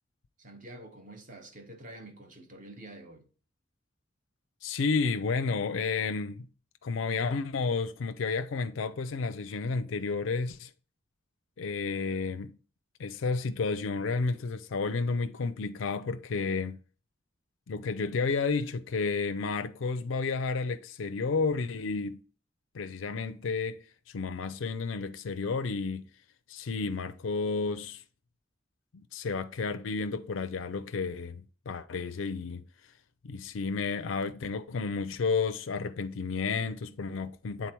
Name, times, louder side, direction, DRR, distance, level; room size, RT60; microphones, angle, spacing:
voice 1, 0.4-3.2, right 1 dB, 40° right, 1.2 m, -47 dB
voice 2, 4.6-6.5 6.8-10.7 11.6-12.6 13.0-16.8 17.7-22.2 22.7-23.8 24.1-26.1 26.5-28.0 28.9-32.6 33.2-37.7, left 4 dB, 75° left, 0.5 m, -31 dB
8.3 x 3.9 x 4.5 m
head